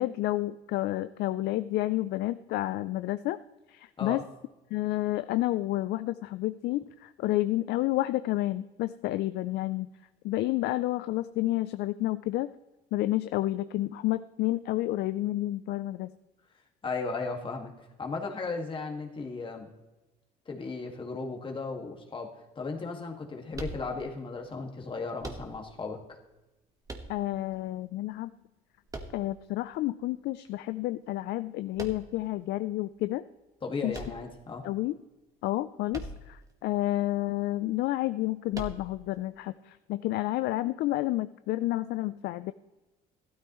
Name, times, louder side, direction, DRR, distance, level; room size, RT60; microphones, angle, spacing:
voice 1, 0.0-3.4 3.7-4.2 4.7-9.9 10.2-12.5 12.9-16.1 27.1-28.3 29.1-33.2 33.8-34.0 34.6-34.9 35.4-42.5, left 16 dB, 75° left, 13 dB, 0.4 m, -30 dB
voice 2, 16.8-17.7 18.0-19.7 20.5-22.3 22.6-26.0 33.6-34.6, left 4 dB, 30° left, 2 dB, 1.8 m, -35 dB
sound 1, 23.5-24.3 25.2-25.9 26.9-27.6 28.9-29.7 31.8-32.3 33.9-34.8 35.9-36.5 36.7-36.8 38.5-39.2, right 2 dB, 20° right, 1.4 m, -41 dB
15.0 x 12.5 x 3.1 m, 1.1 s
cardioid pair, 110°, 17 cm